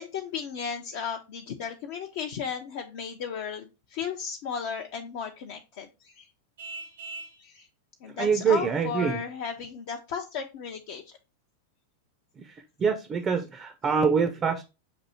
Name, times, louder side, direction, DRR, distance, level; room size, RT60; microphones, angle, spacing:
voice 1, 0.0-6.3 7.4-7.7 8.0-11.0, left 6 dB, 50° left, 3 dB, 0.5 m, -35 dB
Vehicle horn car horn honking, 6.6-7.4, right 3 dB, 60° right, 0.8 m, -40 dB
voice 2, 8.2-9.2 12.4-12.5 12.8-14.7, right 6 dB, 25° right, 6 dB, 0.5 m, -25 dB
6.8 x 2.6 x 2.7 m, 0.28 s
figure-of-eight pair, 90°, 0 cm